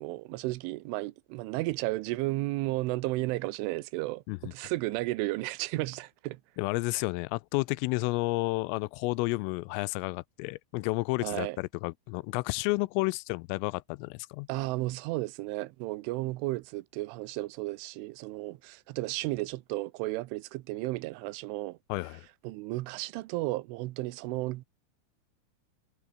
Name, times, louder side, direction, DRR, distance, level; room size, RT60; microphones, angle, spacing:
voice 1, 0.0-6.4 11.2-11.6 14.5-21.8 22.4-24.7, right 20 dB, 80° right, 3.2 m, -33 dB
voice 2, 6.6-14.5 21.9-22.3, left 24 dB, 85° left, 3.2 m, -31 dB
omnidirectional pair, 5.8 m